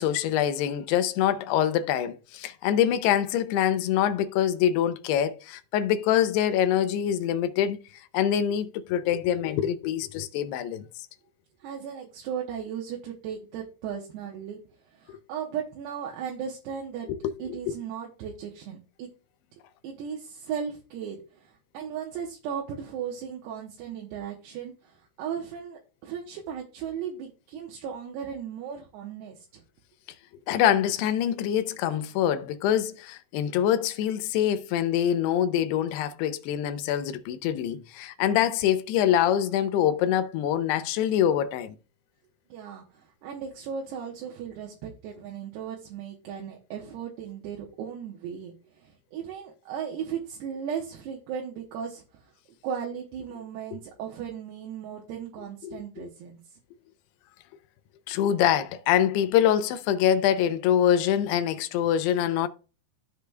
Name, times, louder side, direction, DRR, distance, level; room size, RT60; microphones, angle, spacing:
voice 1, 0.0-7.8 8.1-10.8 15.1-15.2 17.1-17.3 17.7-17.8 30.5-41.8 55.6-56.1 58.1-62.5, left 10 dB, 80° left, 2.6 m, -25 dB
voice 2, 11.6-14.6 14.9-17.1 17.4-19.1 19.8-29.6 42.5-52.3 52.6-56.6, right 8 dB, 75° right, 3.0 m, -36 dB
14.0 x 5.1 x 2.2 m
omnidirectional pair, 5.0 m